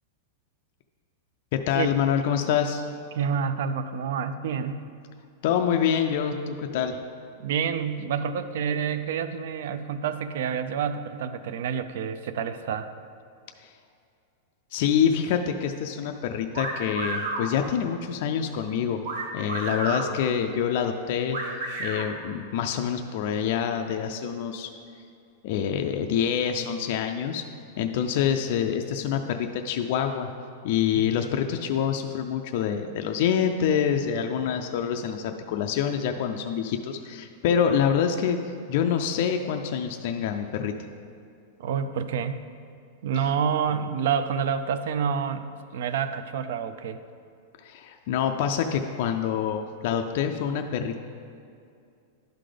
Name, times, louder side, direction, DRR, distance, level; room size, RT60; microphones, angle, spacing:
voice 1, 1.5-2.9 5.4-7.0 14.7-19.0 19.3-21.4 21.8-24.7 25.4-27.4 27.8-30.3 30.6-40.7 47.6-51.0, left 8 dB, 45° left, 4 dB, 0.3 m, -26 dB
voice 2, 3.1-4.9 7.4-12.9 30.9-31.1 41.6-42.4 43.0-45.5 45.7-47.0, right 7 dB, 60° right, 11 dB, 0.4 m, -28 dB
sound 1, 16.5-17.5 19.0-20.1 21.3-22.0, right 2 dB, 80° right, 1.7 m, -31 dB
11.5 x 3.9 x 5.0 m, 2.4 s
supercardioid pair, 175°, 0 cm